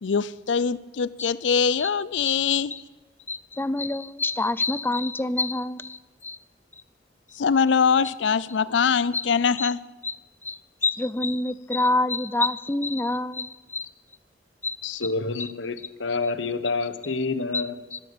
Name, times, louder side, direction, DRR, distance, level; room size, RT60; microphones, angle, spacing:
voice 1, 0.0-2.7 7.4-9.8, left 6 dB, 70° left, 18 dB, 0.5 m, -23 dB
voice 2, 3.3-6.4 9.1-9.2 9.6-9.7 10.0-10.2 10.4-13.9 14.6-14.8 17.5-17.6 17.9-18.0, left 2 dB, 10° left, 17 dB, 0.4 m, -27 dB
voice 3, 14.8-18.0, left 3 dB, 90° left, 13 dB, 1.0 m, -28 dB
13.5 x 12.0 x 6.9 m, 1.3 s
head